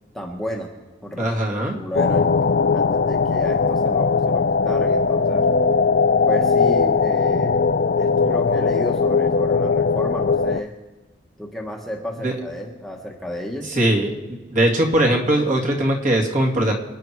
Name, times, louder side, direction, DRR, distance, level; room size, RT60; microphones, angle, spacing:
voice 1, 0.1-0.7 1.0-1.3 1.7-2.3 2.7-5.5 6.3-7.7 8.0-10.7 11.4-13.7, equal, ahead, 0 dB, 1.3 m, -32 dB
voice 2, 1.2-1.8 12.2-12.3 13.6-16.7, right 1 dB, 40° right, 0 dB, 2.6 m, -20 dB
sound 1, 1.9-10.6, left 4 dB, 50° left, 0.4 m, -19 dB
27.5 x 9.7 x 4.7 m, 1.3 s
head